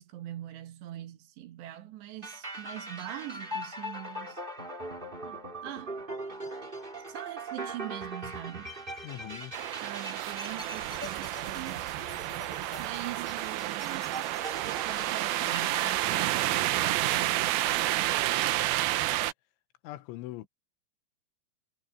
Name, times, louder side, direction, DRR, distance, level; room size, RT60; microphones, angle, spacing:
voice 1, 0.0-4.4 5.3-6.0 7.1-8.7 9.8-12.0 12.8-14.1 14.8-18.2, right 14 dB, 70° right, 3.4 m, -42 dB
sound 1, 2.2-16.0, right 1 dB, 15° right, 2.4 m, -41 dB
voice 2, 9.0-9.6 19.8-20.5, left 16 dB, 85° left, 3.3 m, -41 dB
sound 2, 9.5-19.3, right 15 dB, 90° right, 2.1 m, -30 dB
omnidirectional pair, 5.4 m